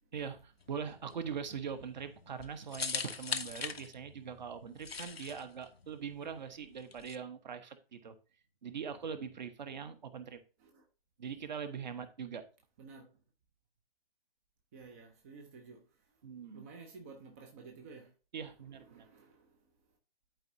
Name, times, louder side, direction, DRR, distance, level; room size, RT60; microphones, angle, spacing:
voice 1, 0.1-8.1 8.6-10.4 11.2-12.4 16.2-16.7 18.3-19.1, right 7 dB, 50° right, 1.1 m, -42 dB
sound 1, 0.6-7.2, left 5 dB, 85° left, 0.7 m, -42 dB
voice 2, 12.8-13.1 14.7-16.2 16.5-18.1 18.7-19.9, right 4 dB, 15° right, 0.5 m, -53 dB
11.5 x 4.6 x 2.6 m
figure-of-eight pair, 130°, 30 cm